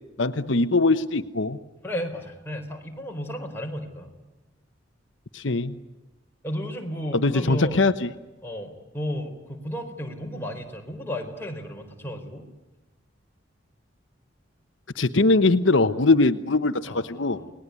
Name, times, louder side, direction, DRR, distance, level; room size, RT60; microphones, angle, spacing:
voice 1, 0.2-1.6 5.3-5.7 7.1-8.1 15.0-17.4, left 3 dB, 80° left, 10 dB, 1.0 m, -21 dB
voice 2, 1.8-4.1 6.4-7.8 8.4-12.5 16.8-17.5, equal, 10° left, 1 dB, 4.3 m, -33 dB
29.5 x 20.0 x 9.6 m, 1.1 s
head